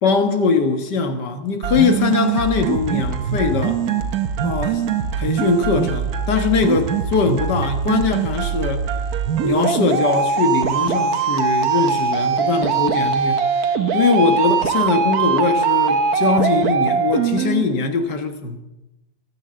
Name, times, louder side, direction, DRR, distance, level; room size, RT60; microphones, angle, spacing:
voice 1, 0.0-3.8 4.4-4.8 5.2-8.9 9.4-13.4 13.9-18.6, left 5 dB, 85° left, 2.2 m, -21 dB
sound 1, 1.6-17.6, right 6 dB, 65° right, 1.4 m, -21 dB
21.5 x 8.5 x 7.7 m
omnidirectional pair, 1.8 m